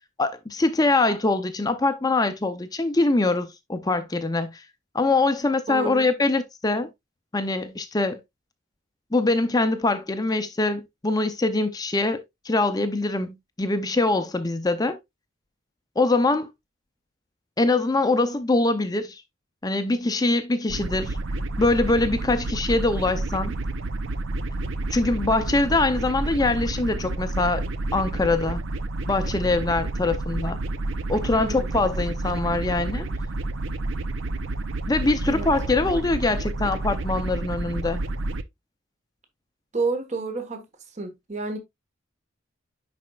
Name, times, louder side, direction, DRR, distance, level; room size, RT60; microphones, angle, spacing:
voice 1, 0.2-4.6 4.9-6.9 7.3-8.2 9.1-15.0 16.0-16.5 17.6-19.2 19.6-21.2 21.6-23.6 24.9-27.6 27.9-28.6 29.1-30.6 31.1-33.1 34.9-38.0, left 2 dB, 20° left, 0.5 m, -23 dB
voice 2, 5.7-6.1 31.4-31.8 35.3-35.5 39.7-40.6 40.9-41.6, right 3 dB, 35° right, 1.2 m, -29 dB
sound 1, 20.7-38.4, right 2 dB, 70° right, 0.6 m, -30 dB
10.0 x 4.2 x 2.3 m
head